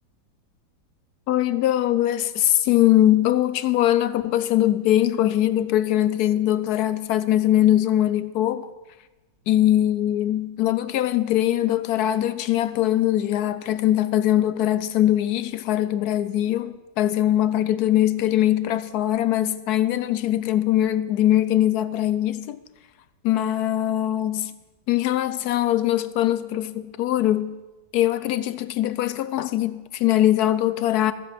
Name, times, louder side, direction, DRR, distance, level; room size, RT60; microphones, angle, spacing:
voice 1, 1.3-8.7 9.5-22.6 23.2-24.5 24.9-27.6 27.9-31.1, left 12 dB, 70° left, 0.9 m, -21 dB
14.0 x 7.9 x 7.5 m
omnidirectional pair, 2.0 m